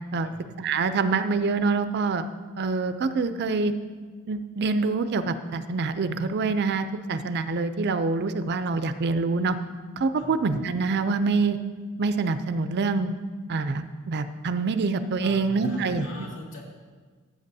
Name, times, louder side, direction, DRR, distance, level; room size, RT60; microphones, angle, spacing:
voice 1, 0.6-2.3 2.6-3.7 4.3-9.6 10.0-11.6 12.0-13.1 13.5-16.1, right 4 dB, 50° right, 11 dB, 0.4 m, -25 dB
voice 2, 15.2-16.6, left 2 dB, 60° left, -3 dB, 2.3 m, -41 dB
15.0 x 8.3 x 2.7 m, 1.5 s
head